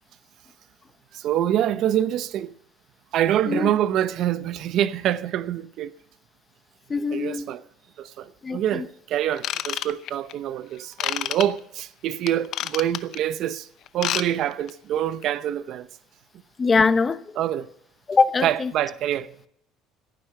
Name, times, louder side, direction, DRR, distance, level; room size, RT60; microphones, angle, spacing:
voice 1, 1.1-2.5 3.1-5.9 7.1-7.6 8.0-13.7 13.9-15.9 17.4-17.7 18.4-19.3, right 11 dB, 60° right, 0.8 m, -25 dB
voice 2, 6.9-7.5 8.4-8.8 16.6-17.2 18.1-18.7, left 4 dB, 25° left, 0.8 m, -22 dB
Ratchet pawl / Tools, 9.4-10.3 11.0-11.4 12.3-13.2 13.9-14.3 14.5-14.7 15.2-15.3, left 12 dB, 55° left, 0.8 m, -28 dB
15.5 x 9.4 x 6.7 m
cardioid pair, 120°, 0 cm